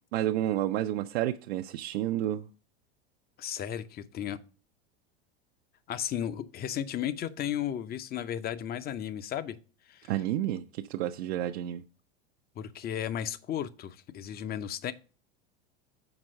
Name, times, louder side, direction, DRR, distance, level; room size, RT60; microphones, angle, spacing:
voice 1, 0.1-2.5 10.1-11.8, right 12 dB, 75° right, 0.5 m, -30 dB
voice 2, 3.4-4.4 5.9-9.6 9.9-10.1 12.6-14.9, left 10 dB, 30° left, 0.6 m, -34 dB
6.0 x 4.4 x 6.3 m
hypercardioid pair, 105°, 32 cm